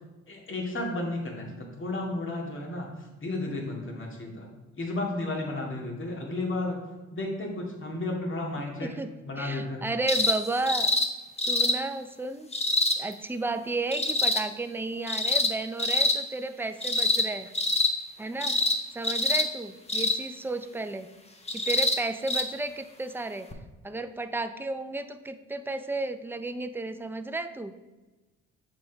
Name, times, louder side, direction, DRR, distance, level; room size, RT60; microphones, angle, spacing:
voice 1, 0.3-4.5 4.8-6.8 7.1-8.9 9.2-9.8, left 2 dB, 40° left, 0 dB, 2.2 m, -33 dB
voice 2, 8.8-9.1 9.4-10.9 11.5-12.5 13.0-17.5 18.2-18.6 18.9-21.1 21.5-23.5 23.8-27.7, right 2 dB, 5° right, 9 dB, 0.5 m, -33 dB
sound 1, 10.1-10.4 10.7-11.1 11.4-11.8 12.5-13.0 13.9-14.4 15.1-15.5 15.8-16.2 16.8-17.3 17.5-17.9 18.4-18.8 19.0-19.5 19.9-20.2 21.5-22.0 22.3-22.4 23.5-23.6, left 2 dB, 20° left, 1.0 m, -25 dB
7.4 x 5.2 x 4.6 m, 1.2 s
cardioid pair, 90°, 30 cm